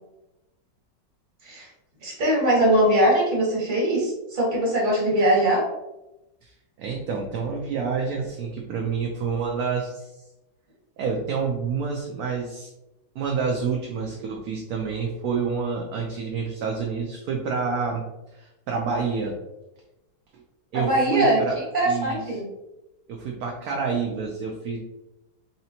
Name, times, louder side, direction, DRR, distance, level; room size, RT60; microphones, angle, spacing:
voice 1, 2.0-5.6 20.7-22.4, right 1 dB, 30° right, -4 dB, 1.3 m, -21 dB
voice 2, 6.4-10.2 11.0-12.7 13.2-18.0 18.3-19.3 20.7-21.6 21.8-22.2 23.1-24.8, right 5 dB, 70° right, 0 dB, 0.9 m, -28 dB
4.1 x 2.9 x 2.7 m, 0.95 s
omnidirectional pair, 2.0 m